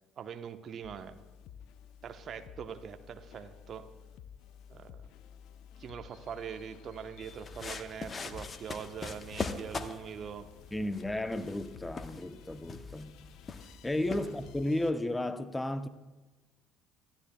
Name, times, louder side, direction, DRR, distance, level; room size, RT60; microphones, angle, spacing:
voice 1, 0.2-1.2 2.0-3.8 4.7-5.1 5.8-10.4, right 7 dB, 45° right, 1.0 m, -42 dB
sound 1, 0.8-14.9, left 8 dB, 60° left, 0.5 m, -53 dB
sound 2, 7.2-14.7, left 4 dB, 30° left, 1.1 m, -42 dB
voice 2, 10.7-13.1 13.8-15.9, left 1 dB, 10° left, 0.8 m, -33 dB
25.5 x 14.5 x 2.3 m
figure-of-eight pair, 55°, 0 cm